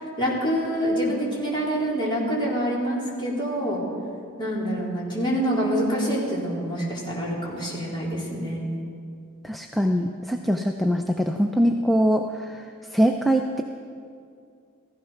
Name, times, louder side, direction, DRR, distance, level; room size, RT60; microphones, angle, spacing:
voice 1, 0.2-3.8 4.4-8.7, equal, 20° left, -5 dB, 4.1 m, -26 dB
voice 2, 9.4-12.6 12.9-13.6, equal, ahead, 4 dB, 0.5 m, -23 dB
16.0 x 15.5 x 5.8 m, 2.4 s
head